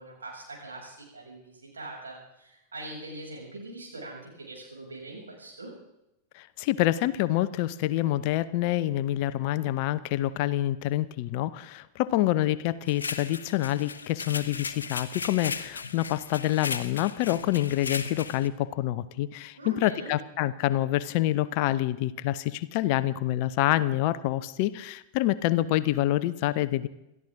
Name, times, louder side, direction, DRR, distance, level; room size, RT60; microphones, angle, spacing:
voice 1, 0.0-5.7 19.6-20.1, right 2 dB, 70° right, -2 dB, 7.2 m, -42 dB
voice 2, 6.3-26.9, left 15 dB, 45° left, 15 dB, 0.7 m, -27 dB
sound 1, 12.9-18.5, left 5 dB, 70° left, 1.0 m, -37 dB
28.0 x 13.5 x 3.8 m, 0.86 s
figure-of-eight pair, 90°, 0 cm